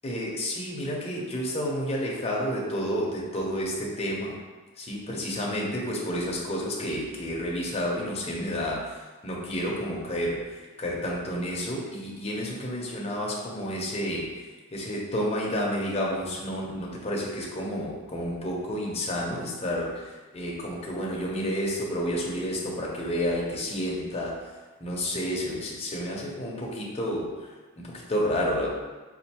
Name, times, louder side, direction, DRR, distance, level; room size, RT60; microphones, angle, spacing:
voice 1, 0.0-4.4 4.8-14.3 14.7-24.4 24.8-27.5 27.8-28.7, equal, 30° left, -3 dB, 0.6 m, -30 dB
4.3 x 2.5 x 2.8 m, 1.3 s
head